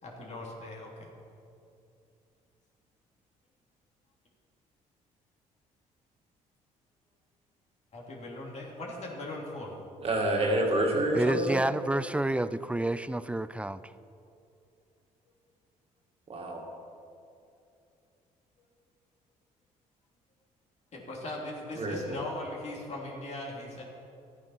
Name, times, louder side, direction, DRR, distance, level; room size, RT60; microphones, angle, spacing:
voice 1, 0.0-0.9 7.9-9.7 20.9-23.8, left 1 dB, 50° left, -3 dB, 3.1 m, -39 dB
voice 2, 10.0-11.6 16.3-16.7 21.7-22.2, right 1 dB, 40° right, 0 dB, 2.2 m, -28 dB
voice 3, 11.1-13.8, right 1 dB, 10° right, 15 dB, 0.4 m, -29 dB
12.0 x 9.3 x 5.7 m, 2.6 s
supercardioid pair, 75°, 15 cm